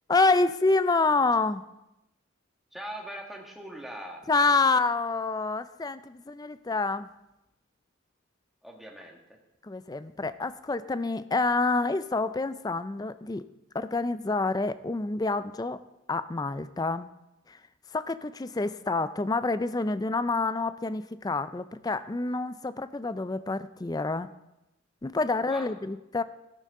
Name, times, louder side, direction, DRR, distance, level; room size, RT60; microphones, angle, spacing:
voice 1, 0.1-1.7 4.3-7.1 9.6-13.5 13.7-15.8 16.1-17.1 17.5-17.6 17.9-24.3 25.0-26.2, left 3 dB, 20° left, 13 dB, 0.4 m, -27 dB
voice 2, 2.7-4.2 8.6-9.4 25.3-25.8, right 1 dB, ahead, 0 dB, 1.7 m, -41 dB
17.0 x 13.0 x 3.7 m, 0.91 s
head